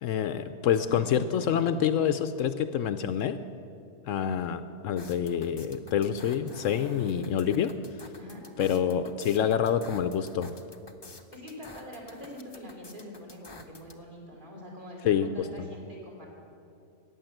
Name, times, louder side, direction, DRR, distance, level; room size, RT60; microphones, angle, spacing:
voice 1, 0.0-3.4 4.1-7.7 8.6-10.5 15.0-15.5, left 8 dB, 70° left, 11 dB, 0.9 m, -27 dB
voice 2, 0.8-1.1 8.2-8.4 11.3-16.3, left 1 dB, 35° right, -3 dB, 3.3 m, -45 dB
sound 1, 5.0-13.9, left 2 dB, 25° left, 0.7 m, -49 dB
15.0 x 9.4 x 7.8 m, 2.7 s
omnidirectional pair, 1.4 m